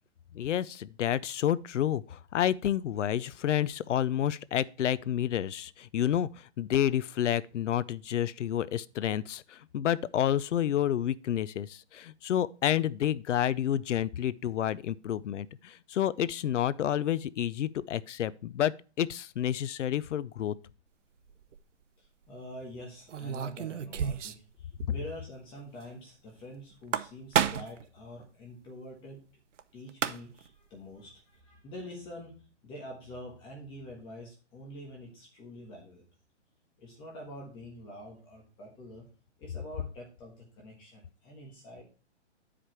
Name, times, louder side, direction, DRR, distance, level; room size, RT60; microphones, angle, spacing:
voice 1, 0.3-20.5, left 10 dB, 80° left, 0.6 m, -29 dB
sound 1, 21.3-21.6 23.1-24.5 24.8-24.9 25.2-25.3 26.7-27.8 29.6-29.7 29.9-30.5, right 8 dB, 85° right, 0.7 m, -31 dB
voice 2, 22.0-29.2 29.7-32.3 32.6-36.1 36.8-39.0 39.4-41.8, left 1 dB, 15° left, 1.4 m, -46 dB
10.0 x 5.0 x 4.4 m
hypercardioid pair, 160°, 36 cm